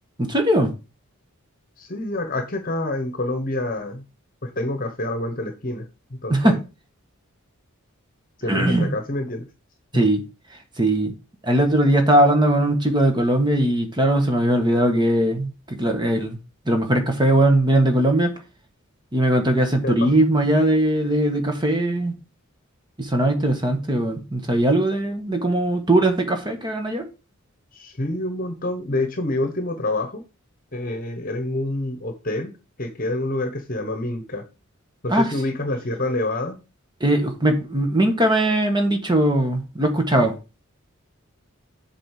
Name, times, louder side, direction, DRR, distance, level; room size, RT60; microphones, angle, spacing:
voice 1, 0.2-0.7 6.3-6.6 8.5-8.9 9.9-10.2 10.8-11.1 11.4-16.4 16.7-18.3 19.1-22.1 23.0-27.1 35.1-35.3 37.0-40.3, right 1 dB, 20° right, 1.5 m, -20 dB
voice 2, 1.8-4.0 4.4-5.8 6.2-6.6 8.4-9.5 9.9-10.1 19.8-20.1 27.7-30.2 30.7-32.5 32.8-34.4 35.0-36.6, left 2 dB, 40° left, 1.2 m, -27 dB
7.6 x 4.3 x 6.5 m
head